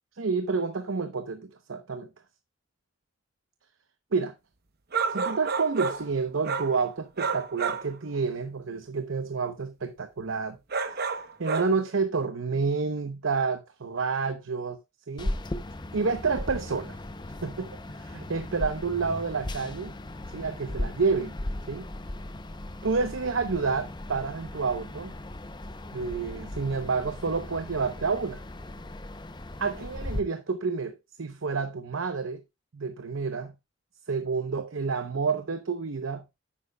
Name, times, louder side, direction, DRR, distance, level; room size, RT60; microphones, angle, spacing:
voice 1, 0.2-2.1 4.1-4.3 5.1-10.6 11.4-14.8 15.1-15.4 15.9-17.0 17.4-20.0 20.3-21.3 21.7-21.9 22.8-25.1 25.9-28.4 29.6-32.4 32.7-33.5 34.1-36.2, right 4 dB, 80° right, 0.8 m, -29 dB
sound 1, 4.9-6.1 6.4-6.8 7.2-7.9 10.7-11.7, right 5 dB, 50° right, 0.9 m, -30 dB
sound 2, 15.2-30.2, left 1 dB, 20° left, 0.6 m, -37 dB
10.5 x 8.4 x 2.2 m
head